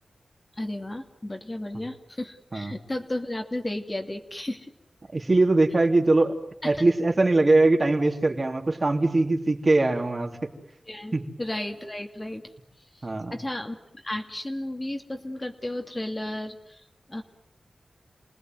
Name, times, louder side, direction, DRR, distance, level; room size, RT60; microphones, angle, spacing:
voice 1, 0.6-4.7 6.6-6.8 10.9-12.4 13.3-16.8 17.1-17.2, left 1 dB, 25° left, 4 dB, 2.6 m, -33 dB
voice 2, 5.1-6.4 6.6-10.5 11.1-11.3 13.0-13.4, right 2 dB, 40° right, 2 dB, 3.6 m, -22 dB
28.5 x 19.0 x 9.4 m, 0.77 s
cardioid pair, 60°, 0 cm